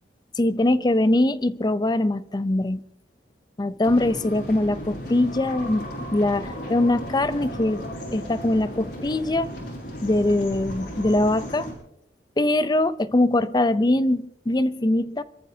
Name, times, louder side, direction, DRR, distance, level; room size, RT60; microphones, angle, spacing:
voice 1, 0.4-2.8 3.6-7.8 8.1-9.5 10.0-11.7 12.4-15.2, left 1 dB, 25° left, 0.5 m, -22 dB
sound 1, 3.8-11.7, equal, 75° left, 6.7 m, -35 dB
29.5 x 14.0 x 2.8 m
head